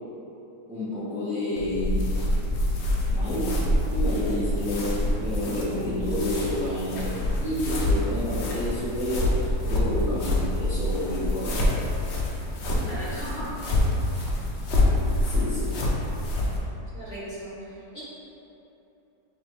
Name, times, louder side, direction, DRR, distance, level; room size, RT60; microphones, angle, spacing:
voice 1, 0.7-2.1 3.1-11.8 15.2-15.8, left 1 dB, 5° right, -11 dB, 0.6 m, -30 dB
sound 1, 1.6-16.6, left 1 dB, 65° left, 0.6 m, -26 dB
voice 2, 12.9-13.5 16.9-18.0, right 1 dB, 45° left, -10 dB, 1.1 m, -37 dB
6.8 x 2.4 x 3.0 m, 3.0 s
omnidirectional pair, 1.8 m